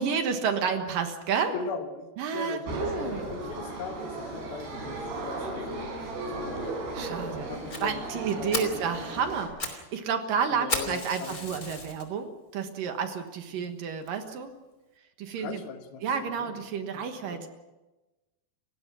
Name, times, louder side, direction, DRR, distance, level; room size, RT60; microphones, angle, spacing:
voice 1, 0.0-1.5 2.2-3.2 6.9-7.5 7.8-14.5 15.2-15.6 16.0-17.5, right 6 dB, 65° right, 7 dB, 2.8 m, -30 dB
voice 2, 1.5-7.0 7.5-8.9 10.5-11.4 13.5-13.8 15.4-16.6 16.9-17.5, left 5 dB, 70° left, 7 dB, 3.1 m, -40 dB
sound 1, 2.7-9.5, right 2 dB, 80° right, 7.2 m, -36 dB
Fire, 7.7-7.8 8.2-8.3 8.5-8.8 9.3-9.8 10.1-10.2 10.7-12.0 12.6-12.7 13.3-13.4 13.6-13.7 14.1-14.2, left 3 dB, 25° left, 2.8 m, -33 dB
29.5 x 16.5 x 6.2 m, 1.1 s
omnidirectional pair, 4.7 m